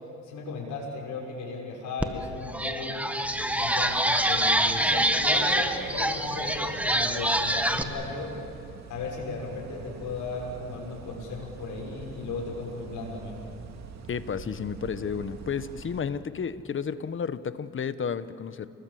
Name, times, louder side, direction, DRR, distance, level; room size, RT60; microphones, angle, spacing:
voice 1, 0.2-3.3 3.5-8.3 8.9-13.4, left 3 dB, 75° left, -3 dB, 6.5 m, -36 dB
sound 1, 2.0-2.1 2.5-7.8, right 1 dB, 5° right, 1.6 m, -25 dB
sound 2, 3.2-16.0, right 5 dB, 60° right, 2.4 m, -45 dB
voice 2, 14.1-18.7, left 6 dB, 40° left, 14 dB, 1.1 m, -32 dB
29.5 x 21.0 x 7.7 m, 2.6 s
cardioid pair, 90°, 30 cm